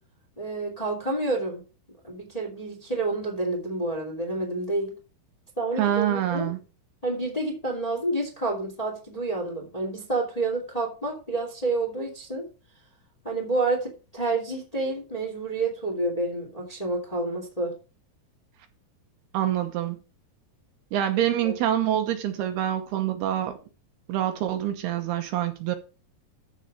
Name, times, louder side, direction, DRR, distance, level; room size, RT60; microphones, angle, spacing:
voice 1, 0.4-1.6 2.0-4.9 5.6-6.5 7.0-12.4 13.2-17.7 21.4-21.5, right 2 dB, 10° left, 1.8 m, -29 dB
voice 2, 5.8-6.6 19.3-20.0 20.9-23.6 24.1-25.8, right 11 dB, 75° right, 2.8 m, -26 dB
13.5 x 5.5 x 4.9 m
omnidirectional pair, 5.0 m